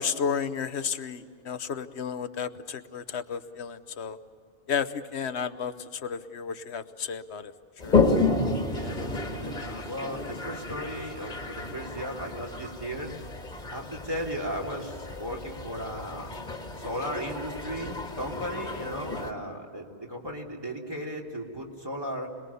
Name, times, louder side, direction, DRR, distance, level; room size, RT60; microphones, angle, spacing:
voice 1, 0.0-4.2 4.7-7.5 7.8-8.0, left 6 dB, 70° left, 12 dB, 1.2 m, -32 dB
Toilet flush, 7.8-19.3, left 3 dB, 40° left, 2.0 m, -31 dB
voice 2, 8.7-13.2 13.7-16.3 16.8-22.3, equal, 20° right, -1 dB, 3.0 m, -36 dB
26.5 x 21.0 x 6.9 m, 2.3 s
omnidirectional pair, 1.2 m